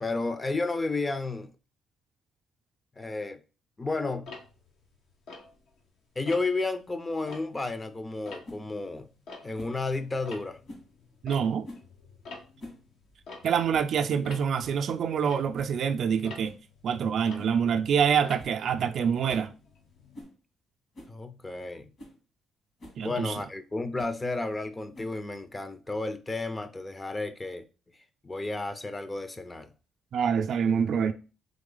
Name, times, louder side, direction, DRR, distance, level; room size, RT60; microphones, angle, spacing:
voice 1, 0.0-1.5 3.0-3.4 3.8-4.3 6.2-9.1 9.4-10.6 21.1-21.9 23.0-27.6 28.2-29.7, left 3 dB, 25° left, 0.6 m, -32 dB
Tick-tock, 4.2-5.9 6.3-6.7 7.1-9.9 10.1-20.2, left 3 dB, 75° left, 1.1 m, -48 dB
sound 1, 8.4-8.6 9.5-9.8 10.6-10.9 11.6-11.9 12.4-12.8 13.1-13.2 13.7-13.9 14.3-14.4 14.6-14.9 15.5-15.8 16.4-16.6 17.4-17.6 17.9-18.0 18.4-18.6 18.9-19.0 19.3-19.5 20.1-20.4 20.9-21.2 21.6-21.7 22.0-22.2 22.8-23.0 24.0-24.2 24.9-25.3, left 1 dB, 55° left, 2.2 m, -47 dB
voice 2, 11.2-11.7 13.4-16.5 16.8-19.5 23.0-23.4 30.1-31.1, right 7 dB, 65° right, 0.4 m, -26 dB
3.7 x 3.1 x 3.9 m
supercardioid pair, 70°, 0 cm